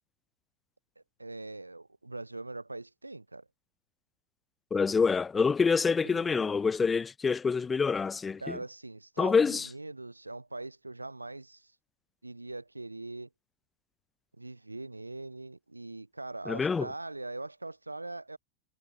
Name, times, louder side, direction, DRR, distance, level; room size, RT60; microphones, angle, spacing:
voice 1, 1.0-3.5 6.0-6.5 8.4-11.7 12.2-13.3 14.4-18.4, right 2 dB, 85° right, 5.6 m, -42 dB
voice 2, 4.7-8.6 9.2-9.7 16.5-16.9, left 5 dB, 15° left, 0.7 m, -26 dB
figure-of-eight pair, 90°, 0 cm